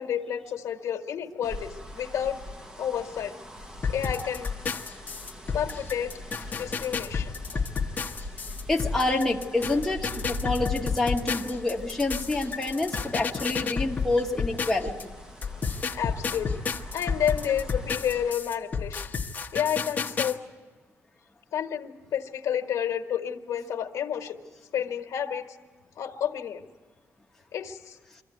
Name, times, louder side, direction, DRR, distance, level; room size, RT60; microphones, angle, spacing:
voice 1, 0.0-2.4 2.8-3.3 3.9-4.5 5.5-6.2 6.5-7.4 15.9-16.6 16.9-19.1 19.5-20.4 21.5-24.4 24.7-25.6 26.0-26.6 27.5-28.0, left 9 dB, 80° left, 6 dB, 1.5 m, -30 dB
sound 1, 1.4-18.3, left 1 dB, 15° right, 1.0 m, -42 dB
sound 2, 3.8-15.0 15.4-20.3, left 5 dB, 30° left, 1.0 m, -31 dB
voice 2, 8.7-15.1, left 2 dB, 5° left, -1 dB, 1.2 m, -27 dB
24.5 x 15.0 x 9.4 m, 1.4 s
wide cardioid pair, 175°, 5 cm